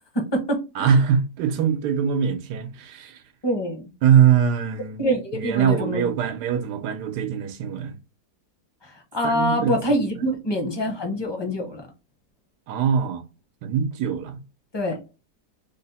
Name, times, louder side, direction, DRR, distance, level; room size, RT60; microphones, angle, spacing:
voice 1, 0.1-1.0 3.4-3.9 5.0-6.1 8.8-11.9 14.7-15.0, equal, 25° left, 0.5 m, -25 dB
voice 2, 0.7-3.2 4.0-5.1 5.3-7.9 9.2-10.1 12.7-13.2 13.6-14.4, right 8 dB, 90° right, 1.2 m, -22 dB
3.5 x 2.0 x 4.1 m
omnidirectional pair, 1.7 m